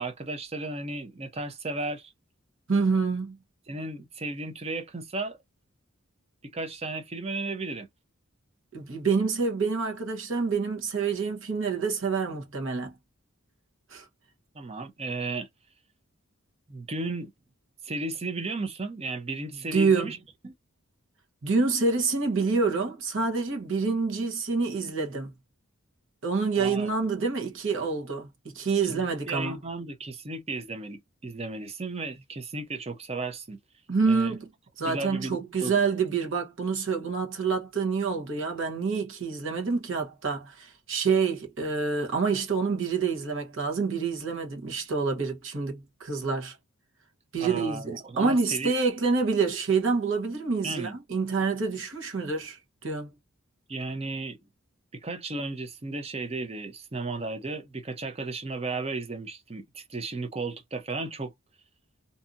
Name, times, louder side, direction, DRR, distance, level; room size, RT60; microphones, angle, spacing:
voice 1, 0.0-2.1 3.7-5.4 6.5-7.9 14.5-15.5 16.7-17.3 17.8-20.2 20.4-20.5 26.6-26.9 28.8-33.6 34.1-34.4 34.8-35.8 47.4-48.7 50.6-50.9 53.7-54.4 54.9-61.3, right 3 dB, 30° right, 0.6 m, -34 dB
voice 2, 2.7-3.4 8.7-12.9 13.9-14.1 19.7-20.2 21.4-25.3 26.2-29.6 33.9-34.5 34.8-46.5 47.3-53.1, right 4 dB, 65° right, 1.0 m, -27 dB
2.6 x 2.5 x 2.5 m
head